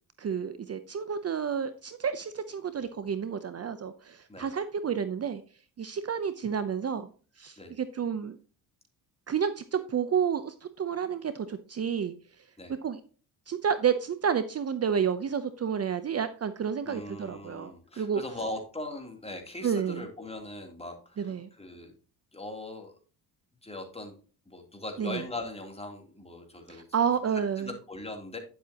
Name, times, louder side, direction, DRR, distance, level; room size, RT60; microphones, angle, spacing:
voice 1, 0.2-5.4 5.8-7.1 7.4-8.4 9.3-12.1 12.8-13.0 13.5-18.2 19.6-20.1 21.2-21.5 25.0-25.2 26.7-27.7, right 7 dB, 40° right, 12 dB, 0.8 m, -30 dB
voice 2, 16.8-21.9 22.3-22.9 23.6-24.1 24.5-26.8 27.6-28.4, left 2 dB, 15° left, 3 dB, 3.2 m, -40 dB
10.5 x 7.7 x 2.9 m, 0.37 s
cardioid pair, 80°, 39 cm